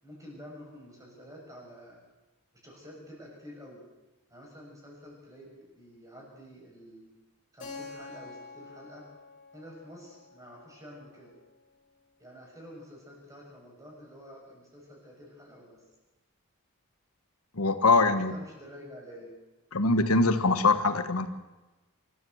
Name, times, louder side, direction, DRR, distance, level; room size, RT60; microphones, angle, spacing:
voice 1, 0.0-2.0 2.6-3.8 4.3-7.1 7.5-9.1 9.5-11.3 12.2-15.8 18.3-19.4, equal, 15° right, -1 dB, 6.6 m, -49 dB
Keyboard (musical), 7.6-12.1, left 3 dB, 35° left, 4.8 m, -48 dB
voice 2, 17.6-18.3 19.7-21.3, left 3 dB, 85° left, 9 dB, 1.4 m, -23 dB
24.5 x 13.5 x 7.9 m, 1.1 s
head